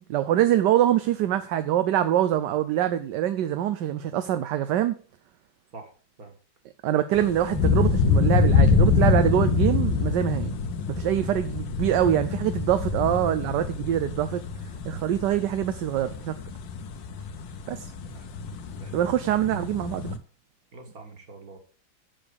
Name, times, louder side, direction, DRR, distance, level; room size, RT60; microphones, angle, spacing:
voice 1, 0.1-5.0 6.8-10.6 10.9-14.4 14.8-16.4 17.7-17.9 18.9-20.2, right 11 dB, 75° right, 1.3 m, -24 dB
sound 1, 7.1-20.2, left 5 dB, 85° left, 1.6 m, -25 dB
voice 2, 20.7-21.6, right 3 dB, 50° right, 2.3 m, -45 dB
7.3 x 6.9 x 7.0 m
omnidirectional pair, 2.0 m